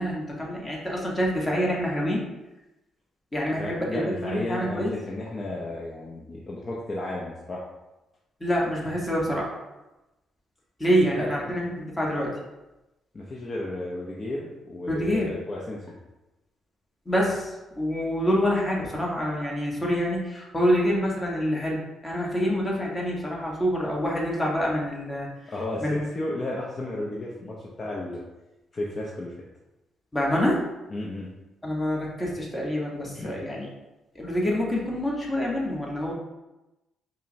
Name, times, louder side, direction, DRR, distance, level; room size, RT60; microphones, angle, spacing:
voice 1, 0.0-2.2 3.3-4.9 8.4-9.5 10.8-12.3 14.9-15.3 17.1-21.8 22.0-25.3 25.8-26.0 30.1-30.6 31.6-33.7 34.1-36.1, equal, 15° left, -3 dB, 1.0 m, -26 dB
voice 2, 3.6-7.7 11.1-11.5 13.1-15.9 25.5-28.2 28.7-29.4 30.9-31.3 33.1-33.4, left 1 dB, 35° left, -4 dB, 0.6 m, -33 dB
5.2 x 2.1 x 2.6 m, 1.0 s
cardioid pair, 90°, 0 cm